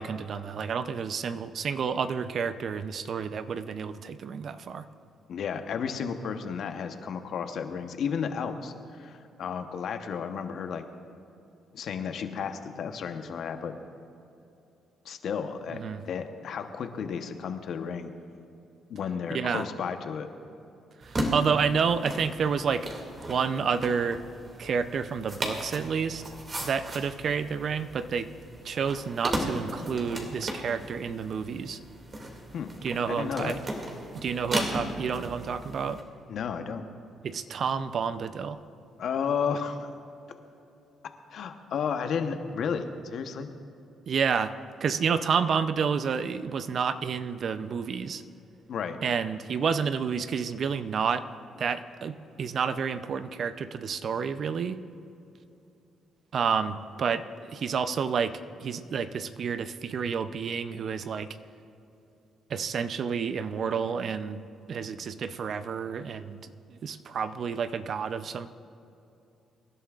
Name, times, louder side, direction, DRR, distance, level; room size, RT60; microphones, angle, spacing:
voice 1, 0.0-4.9 15.7-16.0 19.3-19.7 21.0-24.2 24.6-26.2 26.6-28.3 28.6-31.8 32.8-33.6 34.1-36.0 37.2-38.6 44.1-44.5 44.8-48.2 49.0-51.3 51.6-54.8 56.3-61.4 62.5-64.4 64.7-68.5, right 6 dB, 55° right, 11 dB, 0.5 m, -30 dB
voice 2, 5.3-10.8 11.7-13.7 15.0-15.8 16.0-18.1 18.9-20.3 32.5-32.7 33.1-33.6 36.3-36.8 39.0-39.8 41.3-43.5 48.7-49.0, left 6 dB, 65° left, 7 dB, 1.0 m, -32 dB
sound 1, 21.0-36.0, right 1 dB, 35° right, 2.3 m, -36 dB
25.0 x 11.5 x 2.5 m, 2.8 s
cardioid pair, 90°, 0 cm